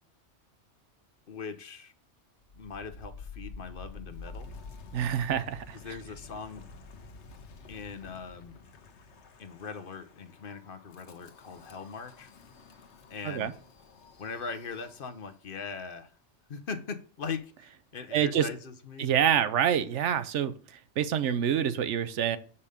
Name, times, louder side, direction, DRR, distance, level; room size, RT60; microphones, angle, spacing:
voice 1, 1.3-1.9 2.5-4.5 5.8-6.6 7.7-8.6 9.4-12.3 13.1-13.5 14.2-16.1 16.5-19.1, left 5 dB, 55° left, 8 dB, 0.9 m, -40 dB
Wind, 2.4-15.4, left 3 dB, 70° left, 1.1 m, -49 dB
voice 2, 4.9-5.8 13.2-13.5 18.1-18.5 19.0-22.4, right 9 dB, 85° right, 12 dB, 1.0 m, -27 dB
6.8 x 5.6 x 5.0 m, 0.42 s
omnidirectional pair, 1.2 m